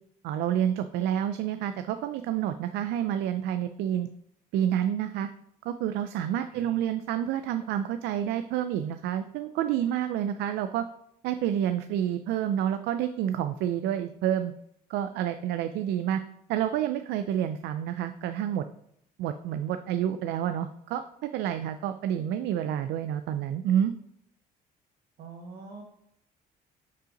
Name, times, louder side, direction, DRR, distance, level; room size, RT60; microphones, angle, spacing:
voice 1, 0.2-4.1 4.5-5.3 5.7-10.9 11.2-14.5 14.9-16.2 16.5-18.7 19.2-23.9, right 10 dB, 80° right, 10 dB, 0.4 m, -29 dB
voice 2, 25.2-25.8, right 4 dB, 60° right, -2 dB, 1.1 m, -44 dB
5.5 x 3.9 x 5.0 m, 0.72 s
cardioid pair, 110°, 17 cm